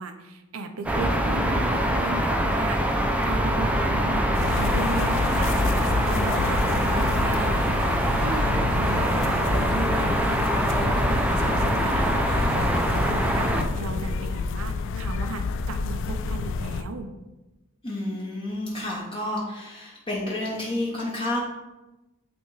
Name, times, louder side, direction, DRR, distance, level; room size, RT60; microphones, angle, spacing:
voice 1, 0.0-4.3 4.6-13.5 13.8-17.1, right 2 dB, 85° right, 7 dB, 0.6 m, -35 dB
sound 1, 0.9-13.6, right 1 dB, 5° right, 0.5 m, -24 dB
sound 2, 4.3-16.8, left 4 dB, 65° left, 0.3 m, -29 dB
voice 2, 17.8-21.4, left 1 dB, 25° left, -4 dB, 0.7 m, -30 dB
8.5 x 3.5 x 3.2 m, 1.0 s
head